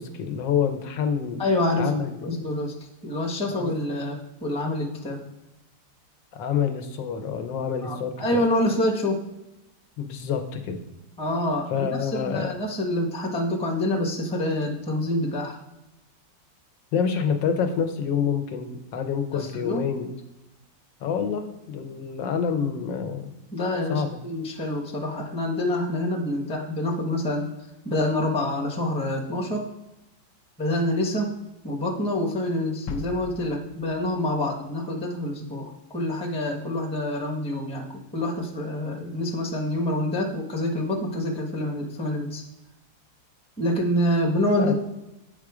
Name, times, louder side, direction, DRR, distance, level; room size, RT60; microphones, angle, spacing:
voice 1, 0.0-1.4 1.8-2.2 3.6-3.7 6.3-8.4 10.0-10.8 11.7-12.5 16.9-20.1 21.0-23.3 23.9-24.2 44.5-44.7, left 7 dB, 85° left, 6 dB, 1.5 m, -27 dB
voice 2, 1.4-1.9 2.2-2.7 3.0-5.2 7.8-9.2 11.2-15.6 19.3-19.8 23.5-27.5 27.8-29.7 30.6-31.4 31.6-42.4 43.6-44.7, left 1 dB, 5° left, -1 dB, 0.6 m, -26 dB
sound 1, 32.9-34.9, left 5 dB, 70° left, 1.1 m, -39 dB
8.3 x 3.7 x 4.8 m, 0.97 s
omnidirectional pair, 1.9 m